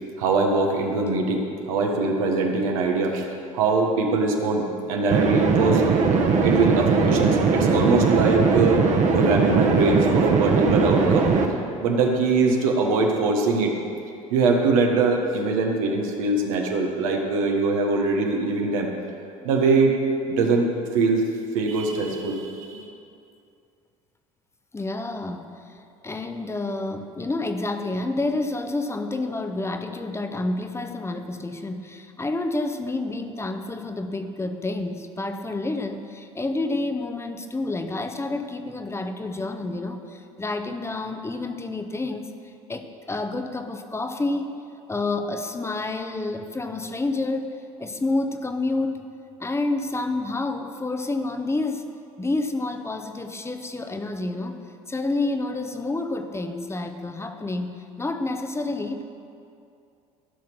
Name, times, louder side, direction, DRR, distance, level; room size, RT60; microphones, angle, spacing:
voice 1, 0.2-3.3 3.5-6.0 6.4-8.8 9.1-11.3 11.8-13.7 14.3-18.9 19.4-19.9 20.2-20.7 20.9-21.2 21.5-22.9, right 3 dB, 75° right, 1 dB, 1.5 m, -22 dB
sound 1, 5.1-11.4, right 5 dB, 40° right, 1.4 m, -20 dB
voice 2, 24.7-25.7 26.0-42.3 42.7-44.6 44.9-49.0 49.4-51.9 52.2-59.0, left 2 dB, 15° left, 7 dB, 0.9 m, -29 dB
14.5 x 6.1 x 6.1 m, 2.5 s
hypercardioid pair, 65°, 18 cm